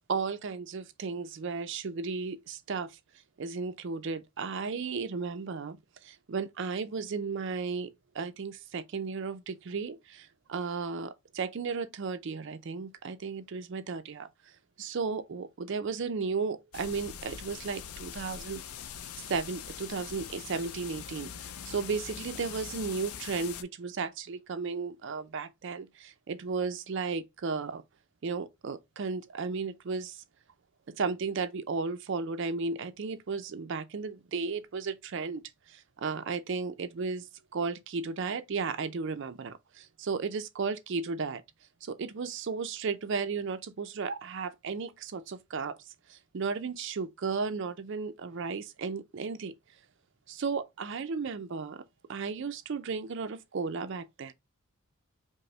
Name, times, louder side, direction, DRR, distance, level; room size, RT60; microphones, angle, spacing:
voice 1, 0.1-3.0 3.4-18.6 19.3-27.8 28.2-30.2 30.9-41.4 41.8-49.5 50.3-51.8 52.1-54.3, right 5 dB, 55° right, 0.4 m, -34 dB
sound 1, 16.7-23.6, left 8 dB, 80° left, 0.4 m, -43 dB
5.1 x 2.0 x 3.2 m
head